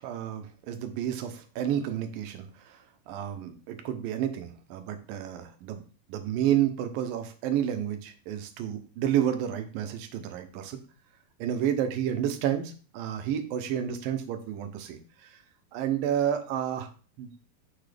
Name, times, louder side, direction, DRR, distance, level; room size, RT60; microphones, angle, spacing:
voice 1, 0.0-2.8 3.1-5.8 6.1-10.8 11.4-15.3 15.7-16.9 17.2-17.3, right 10 dB, 75° right, 8 dB, 2.4 m, -30 dB
6.6 x 6.1 x 3.4 m, 0.38 s
omnidirectional pair, 4.3 m